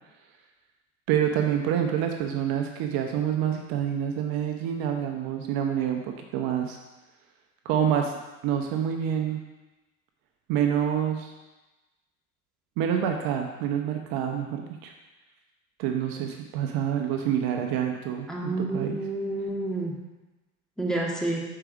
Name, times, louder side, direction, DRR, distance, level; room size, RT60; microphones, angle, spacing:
voice 1, 1.1-6.8 7.6-8.1 8.4-9.4 10.5-11.3 12.8-14.9 15.8-19.0, right 9 dB, 55° right, 4 dB, 0.9 m, -27 dB
voice 2, 18.3-19.9 20.8-21.4, right 2 dB, ahead, -3 dB, 2.0 m, -29 dB
6.6 x 4.9 x 5.1 m, 1.1 s
hypercardioid pair, 80°, 42 cm